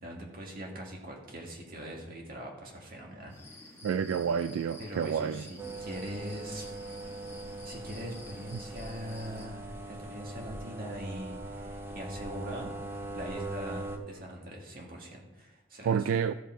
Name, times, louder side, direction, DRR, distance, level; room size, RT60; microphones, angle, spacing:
voice 1, 0.0-3.8 4.8-6.8 7.6-16.1, equal, 45° right, 1.9 m, -42 dB
sound 1, 3.3-9.5, left 2 dB, 10° left, 1.4 m, -51 dB
voice 2, 3.8-5.4 15.9-16.3, right 7 dB, 80° right, 0.3 m, -29 dB
sound 2, 5.6-14.0, right 2 dB, 10° right, 0.6 m, -41 dB
13.5 x 5.2 x 4.4 m
head